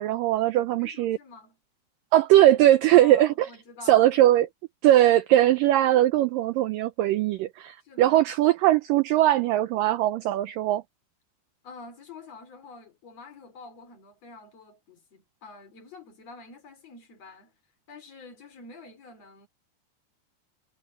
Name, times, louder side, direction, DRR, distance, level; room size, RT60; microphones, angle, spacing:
voice 1, 0.0-1.2 2.1-3.5 3.9-4.5 4.8-10.8, right 13 dB, 85° right, 1.9 m, -20 dB
voice 2, 0.8-1.6 2.9-4.1 7.8-8.3 11.6-17.5 17.9-19.5, left 4 dB, 40° left, 4.8 m, -47 dB
omnidirectional pair, 4.7 m